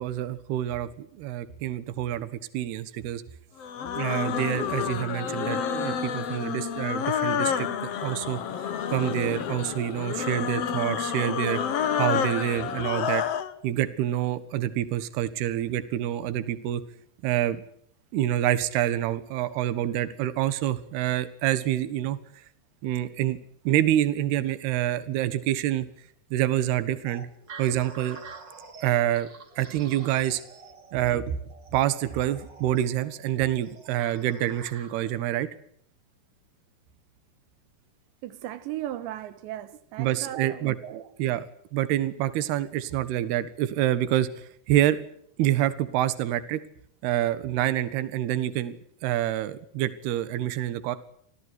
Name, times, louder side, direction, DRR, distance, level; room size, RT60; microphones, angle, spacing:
voice 1, 0.0-2.3 2.5-3.2 4.0-8.4 8.9-11.6 12.0-13.2 13.6-16.8 17.2-17.6 18.1-22.2 22.8-23.4 23.6-25.9 26.3-27.3 27.6-28.2 28.8-29.3 29.6-30.4 30.9-31.4 31.7-35.5 40.0-40.8 41.2-41.5 41.7-45.0 45.4-46.6 47.0-48.8 49.0-51.0, right 12 dB, 70° right, 3.4 m, -27 dB
sound 1, 3.6-13.5, left 8 dB, 70° left, 1.5 m, -29 dB
sound 2, 27.0-35.2, right 4 dB, 30° right, 2.7 m, -47 dB
voice 2, 38.2-41.1, right 13 dB, 85° right, 3.5 m, -37 dB
27.5 x 17.5 x 9.7 m
omnidirectional pair, 5.0 m